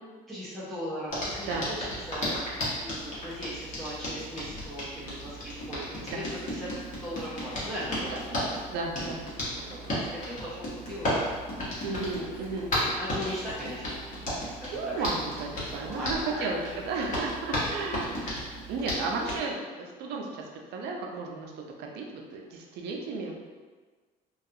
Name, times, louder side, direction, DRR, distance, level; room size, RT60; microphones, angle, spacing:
voice 1, 0.3-6.3 6.5-6.7 7.0-8.5 9.5-11.3 11.6-11.7 12.2-12.5 13.0-14.3 14.6-15.1 15.7-16.8 18.4-18.7 19.1-19.4, equal, ahead, -10 dB, 0.6 m, -39 dB
Hands, 1.1-19.4, equal, 50° left, 1.0 m, -34 dB
voice 2, 8.7-9.2 11.8-13.2 14.7-16.6 16.8-18.2 18.7-20.4 20.7-21.5 21.8-23.4, right 3 dB, 80° right, 1 dB, 0.5 m, -34 dB
2.3 x 2.3 x 2.7 m, 1.4 s
cardioid pair, 110°, 17 cm